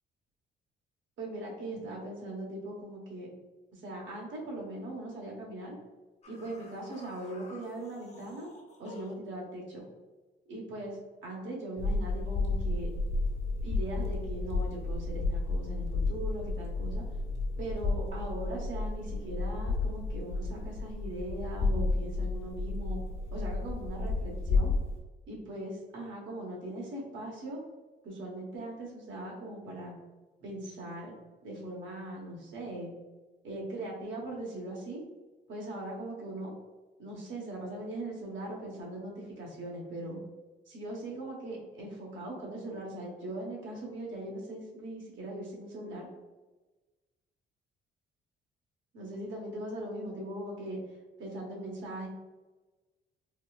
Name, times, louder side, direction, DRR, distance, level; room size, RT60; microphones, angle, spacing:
voice 1, 1.2-3.3 3.7-5.7 6.3-8.5 8.8-9.8 10.5-12.9 13.6-17.0 17.6-23.0 23.3-24.7 25.3-27.6 28.0-29.9 30.4-31.1 31.4-32.9 33.4-35.0 35.5-36.5 37.0-40.2 40.7-46.1 48.9-50.8 51.2-52.1, right 1 dB, 75° right, -1 dB, 1.0 m, -40 dB
sound 1, 6.2-9.3, left 2 dB, 35° left, 0.6 m, -52 dB
sound 2, 11.8-25.0, left 3 dB, 70° left, 0.9 m, -32 dB
4.0 x 2.3 x 2.3 m, 1.2 s
cardioid pair, 90°, 20 cm